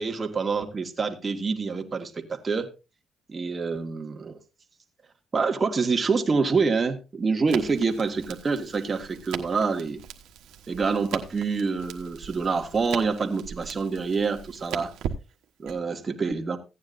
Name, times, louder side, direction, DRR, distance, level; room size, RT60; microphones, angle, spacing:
voice 1, 0.0-2.7 3.3-4.4 5.3-10.0 10.7-14.9 15.6-16.6, right 4 dB, 35° right, 1.8 m, -26 dB
Crackle, 7.5-15.8, right 9 dB, 85° right, 1.3 m, -39 dB
16.0 x 9.5 x 2.6 m
cardioid pair, 90°, 0 cm